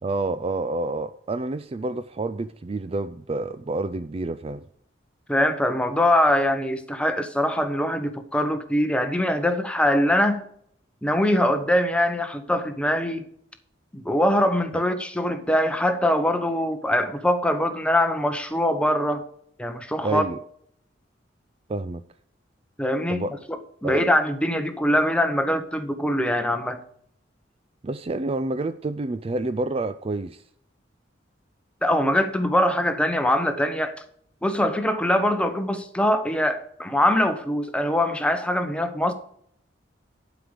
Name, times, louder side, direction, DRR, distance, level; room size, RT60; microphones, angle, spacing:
voice 1, 0.0-4.6 20.0-20.4 21.7-22.0 23.1-23.3 23.8-24.1 27.8-30.4, right 2 dB, 30° right, 11 dB, 0.4 m, -28 dB
voice 2, 5.3-10.4 11.0-13.2 13.9-19.2 19.6-20.3 22.8-26.8 31.8-33.9 34.4-39.1, left 1 dB, 5° left, 8 dB, 0.9 m, -23 dB
11.5 x 5.1 x 6.3 m, 0.66 s
head